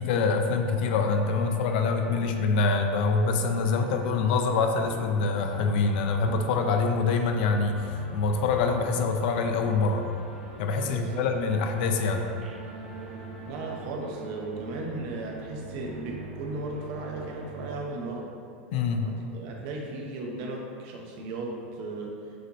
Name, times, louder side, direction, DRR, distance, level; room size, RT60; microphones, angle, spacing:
voice 1, 0.0-10.0 10.6-12.3 18.7-19.1, left 4 dB, 65° left, 5 dB, 0.4 m, -25 dB
sound 1, 0.6-13.8, right 1 dB, 20° right, 1.1 m, -44 dB
sound 2, 7.7-17.8, right 4 dB, 90° right, 0.5 m, -45 dB
voice 2, 10.8-11.3 13.5-18.3 19.0-22.2, right 2 dB, 55° right, 0 dB, 0.7 m, -36 dB
6.2 x 2.6 x 2.8 m, 2.4 s
supercardioid pair, 130°, 6 cm